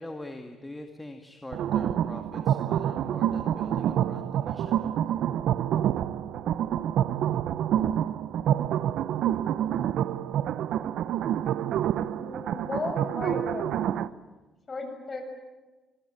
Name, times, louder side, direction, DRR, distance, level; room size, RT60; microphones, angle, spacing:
voice 1, 0.0-4.9, left 1 dB, 10° left, 4 dB, 2.1 m, -43 dB
sound 1, 1.5-14.1, right 10 dB, 75° right, 0.9 m, -27 dB
voice 2, 12.1-14.0 14.7-15.2, left 3 dB, 30° left, 5 dB, 6.8 m, -35 dB
25.0 x 23.0 x 8.9 m, 1.2 s
cardioid pair, 115°, 0 cm